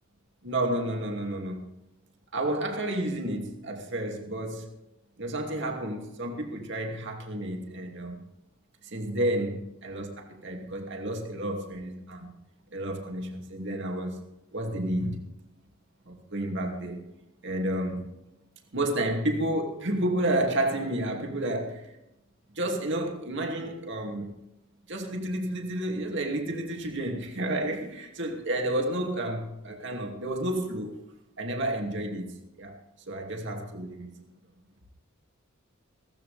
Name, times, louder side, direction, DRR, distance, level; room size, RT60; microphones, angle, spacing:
voice 1, 0.4-1.7 2.3-4.7 5.2-8.2 8.8-12.3 12.7-14.2 14.5-15.2 16.1-17.0 17.4-18.1 18.7-21.9 22.5-24.3 24.9-30.9 31.4-32.8 33.1-34.2, right 1 dB, 60° right, 2.6 m, -31 dB
17.0 x 14.5 x 3.5 m
head